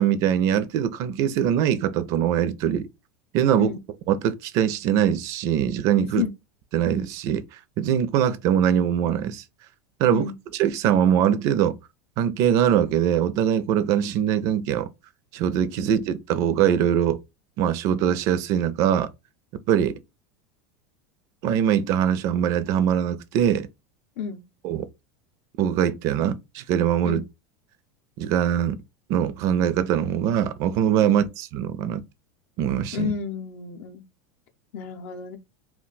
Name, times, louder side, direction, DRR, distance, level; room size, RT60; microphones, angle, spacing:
voice 1, 0.0-2.9 3.3-3.7 4.1-6.2 6.7-7.4 7.8-9.4 10.0-10.3 10.6-11.8 12.2-14.9 15.3-17.2 17.6-19.1 19.7-20.0 21.4-23.7 24.6-24.8 25.6-27.2 28.2-28.8 29.1-32.0 32.6-33.1, right 9 dB, 45° right, 0.4 m, -22 dB
voice 2, 32.9-34.0 34.7-35.4, left 7 dB, 65° left, 0.5 m, -30 dB
2.3 x 2.2 x 3.8 m
supercardioid pair, 145°, 8 cm